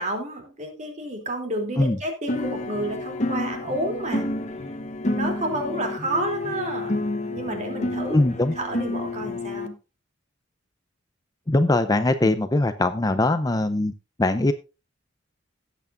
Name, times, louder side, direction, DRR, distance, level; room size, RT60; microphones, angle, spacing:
voice 1, 0.0-4.3 5.0-7.0 7.3-8.2 8.6-9.7 12.2-12.4, right 1 dB, 35° right, 3 dB, 2.9 m, -30 dB
sound 1, 2.3-9.7, left 2 dB, 35° left, 1.0 m, -29 dB
voice 2, 8.1-8.5 11.5-13.9 14.2-14.5, left 2 dB, 20° left, 10 dB, 0.5 m, -21 dB
17.5 x 8.2 x 2.5 m, 0.29 s
head